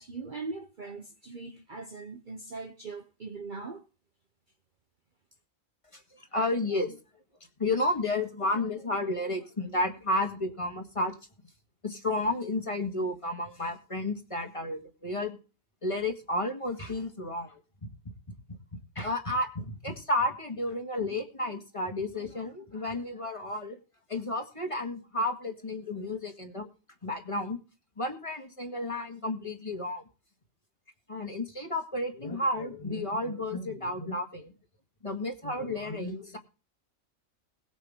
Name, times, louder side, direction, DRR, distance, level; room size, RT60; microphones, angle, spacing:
voice 1, 0.0-3.9, right 3 dB, 40° right, 0.9 m, -40 dB
voice 2, 5.9-7.0 7.6-11.1 11.8-15.4 15.8-17.9 18.7-23.8 24.1-26.7 27.0-27.6 28.0-30.0 31.1-34.5 35.0-36.4, left 1 dB, 25° left, 1.8 m, -32 dB
21.5 x 7.3 x 3.6 m
omnidirectional pair, 1.4 m